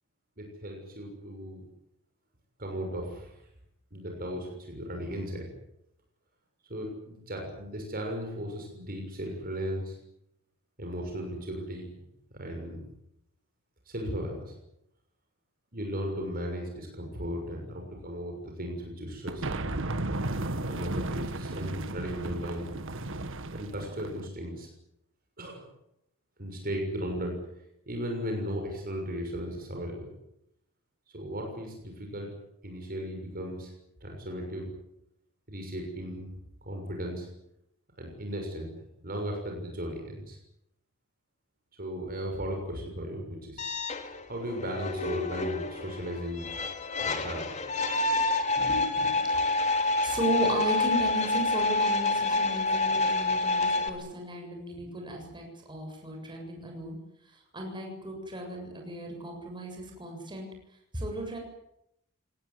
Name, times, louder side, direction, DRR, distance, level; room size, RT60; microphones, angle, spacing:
voice 1, 0.4-1.6 2.6-3.3 3.9-5.5 6.7-10.0 10.8-11.9 12.3-12.8 13.9-14.5 15.7-19.5 20.5-22.7 23.5-24.7 25.4-25.7 26.4-27.4 27.9-30.1 31.1-32.3 32.6-33.7 34.0-34.7 35.5-36.3 36.6-37.3 38.0-38.7 39.0-40.4 41.8-43.8 44.3-46.5 47.0-47.5, equal, 40° right, 2 dB, 6.6 m, -36 dB
sound 1, 19.3-24.3, right 2 dB, 60° right, 1.6 m, -34 dB
sound 2, 43.6-53.9, left 2 dB, 30° left, 2.7 m, -28 dB
voice 2, 47.9-48.3 48.6-57.0 57.5-60.5 60.9-61.4, right 1 dB, 20° right, 2 dB, 7.5 m, -36 dB
23.5 x 19.5 x 9.8 m, 0.80 s
head